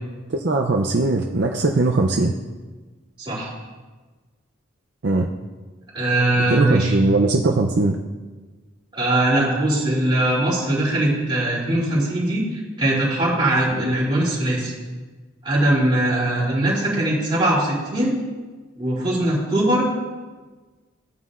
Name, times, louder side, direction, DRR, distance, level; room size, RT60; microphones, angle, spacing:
voice 1, 0.3-2.3 5.0-5.3 6.5-8.0, right 2 dB, 55° right, 1 dB, 0.5 m, -20 dB
voice 2, 3.2-3.5 5.9-6.9 8.9-12.4 12.8-14.7 15.4-18.1 18.8-19.9, right 1 dB, 25° right, -6 dB, 2.9 m, -21 dB
15.0 x 9.3 x 2.5 m, 1.3 s
head